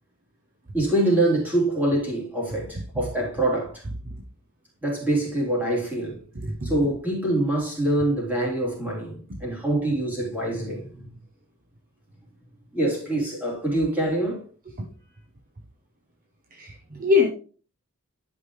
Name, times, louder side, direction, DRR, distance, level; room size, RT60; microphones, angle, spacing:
voice 1, 0.7-3.8 4.8-6.2 6.6-11.1 12.7-14.4, right 1 dB, 10° right, 3.6 m, -25 dB
voice 2, 6.3-6.7 9.3-9.4 14.8-14.9 16.5-17.3, left 5 dB, 40° right, 0.9 m, -23 dB
11.0 x 5.4 x 3.2 m
head